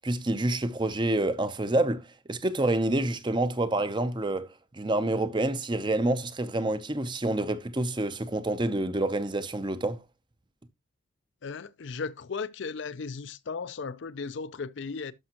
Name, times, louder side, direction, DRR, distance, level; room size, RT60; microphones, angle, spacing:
voice 1, 0.0-4.5 4.7-10.0, right 2 dB, 25° right, 0.6 m, -28 dB
voice 2, 11.4-15.1, left 5 dB, 65° left, 0.5 m, -36 dB
12.0 x 5.4 x 2.9 m
head